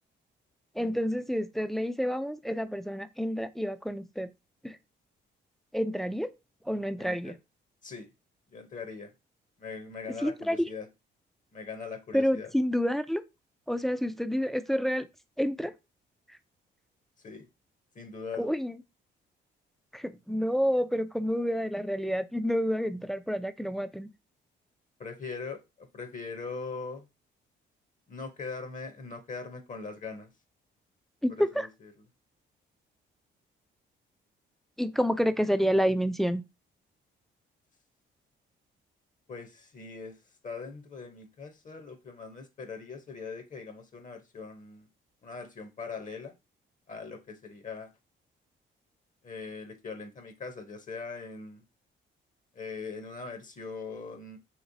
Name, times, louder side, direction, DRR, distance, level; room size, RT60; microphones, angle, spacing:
voice 1, 0.8-4.3 4.6-4.8 5.7-6.3 6.7-7.3 10.2-10.7 12.1-13.2 13.7-15.1 15.4-15.7 18.4-18.8 19.9-24.1 31.2-31.7 34.8-36.4, equal, ahead, 0.3 m, -29 dB
voice 2, 7.0-7.3 7.8-8.1 8.5-9.1 9.6-10.9 11.5-12.5 17.2-17.5 17.9-18.5 25.0-27.1 28.1-30.3 31.4-31.7 39.3-40.2 40.4-44.9 45.2-46.3 46.9-47.9 49.2-51.6 52.5-54.4, left 4 dB, 40° left, 0.7 m, -41 dB
3.1 x 2.9 x 2.6 m
cardioid pair, 90°, 20 cm